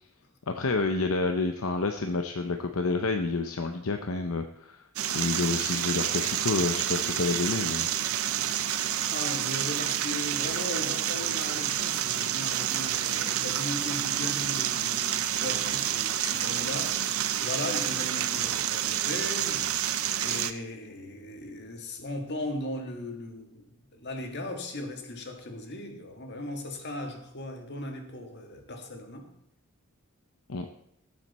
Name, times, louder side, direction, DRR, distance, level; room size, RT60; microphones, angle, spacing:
voice 1, 0.5-4.8 5.1-7.9 30.5-30.6, left 3 dB, 70° left, 0.8 m, -29 dB
sound 1, 5.0-20.5, right 10 dB, 75° right, 0.7 m, -29 dB
voice 2, 9.1-29.3, left 1 dB, 50° left, 1.8 m, -38 dB
18.5 x 7.8 x 4.2 m
head